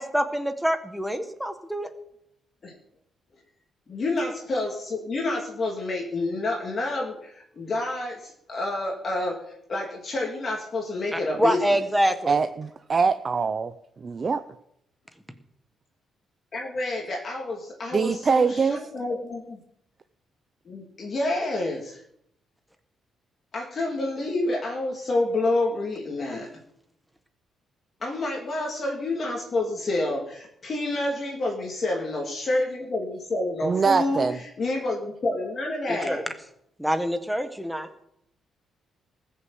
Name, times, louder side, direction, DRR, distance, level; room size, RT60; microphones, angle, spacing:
voice 1, 0.0-1.9 11.1-12.4 35.9-36.2 36.8-37.9, equal, ahead, 8 dB, 1.2 m, -26 dB
voice 2, 3.9-11.8 16.5-19.6 20.6-22.0 23.5-26.5 28.0-36.2, left 2 dB, 30° left, 0 dB, 2.4 m, -28 dB
voice 3, 12.3-13.7 14.0-14.4 17.9-18.8 33.6-34.4, right 5 dB, 25° right, 10 dB, 0.6 m, -23 dB
19.5 x 6.6 x 7.8 m, 0.74 s
cardioid pair, 170°, 0 cm